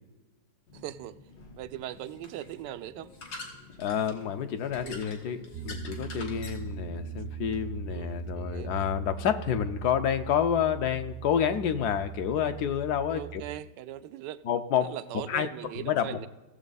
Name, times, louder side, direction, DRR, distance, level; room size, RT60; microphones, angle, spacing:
sound 1, 0.7-7.6, left 3 dB, 90° left, 2.2 m, -47 dB
voice 1, 0.7-1.2 1.6-3.1 4.8-5.0 6.1-6.3 7.9-8.9 13.1-14.4 14.8-16.3, right 13 dB, 80° right, 12 dB, 1.2 m, -40 dB
voice 2, 3.8-13.4 14.5-14.9 15.3-15.5 15.8-16.3, left 8 dB, 70° left, 9 dB, 1.2 m, -29 dB
Piano, 5.5-13.6, right 10 dB, 65° right, 0.7 m, -40 dB
16.0 x 7.3 x 4.0 m, 1.1 s
omnidirectional pair, 1.9 m